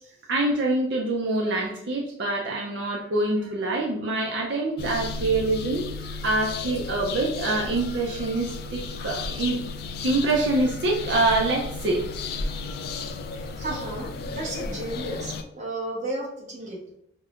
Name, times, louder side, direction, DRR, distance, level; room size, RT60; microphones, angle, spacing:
voice 1, 0.3-5.9 6.2-9.6 10.0-12.1, right 2 dB, 70° right, -2 dB, 0.5 m, -25 dB
sound 1, 4.8-15.4, left 4 dB, 55° left, 0.3 m, -34 dB
voice 2, 13.3-16.8, right 2 dB, 40° right, -3 dB, 1.0 m, -34 dB
5.2 x 2.1 x 2.4 m, 0.76 s
head